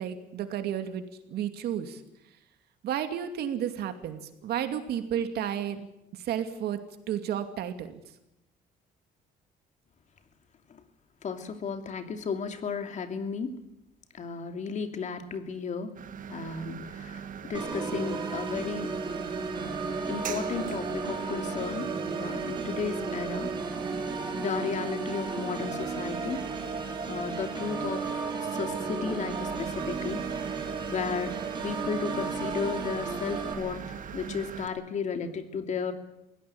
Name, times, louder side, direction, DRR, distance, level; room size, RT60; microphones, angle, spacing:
voice 1, 0.0-2.0 2.8-5.9 6.2-6.8 7.1-8.0, right 9 dB, 70° right, 8 dB, 2.6 m, -32 dB
voice 2, 11.2-13.5 14.1-15.9 16.3-18.9 19.6-19.7 20.1-21.9 22.2-23.5 24.4-26.4 27.0-31.3 31.6-35.9, left 5 dB, 45° left, 7 dB, 2.8 m, -34 dB
sound 1, 15.9-34.7, right 7 dB, 50° right, 1.8 m, -41 dB
Organ, 17.5-33.5, right 4 dB, 30° right, 4.8 m, -34 dB
21.5 x 17.0 x 8.7 m, 0.88 s
cardioid pair, 110°, 17 cm